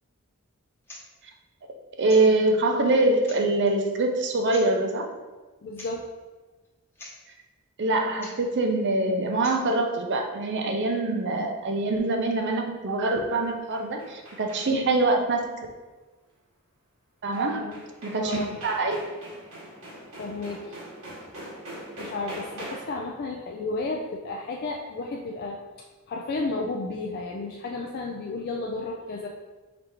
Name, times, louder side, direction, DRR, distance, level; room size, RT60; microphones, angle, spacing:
sound 1, 0.8-1.1 2.0-2.3 2.9-3.0 3.2-3.7 4.5-4.7 5.7-5.9 6.2-6.3 6.6-6.7 6.9-7.2 8.2-8.4 9.4-9.6, left 1 dB, 10° left, 0.9 m, -44 dB
voice 1, 2.0-5.1 7.8-15.6 17.2-17.7 18.0-19.0, right 2 dB, 55° right, 3 dB, 0.6 m, -24 dB
voice 2, 5.6-6.1 14.7-14.9 17.6-17.8 18.2-18.6 20.2-20.8 22.0-25.6 26.1-29.3, left 3 dB, 50° left, 0 dB, 0.4 m, -32 dB
sound 2, 13.2-15.0 17.3-17.4 17.7-23.1, right 1 dB, 80° right, 1.4 m, -42 dB
5.0 x 3.3 x 2.9 m, 1.3 s
head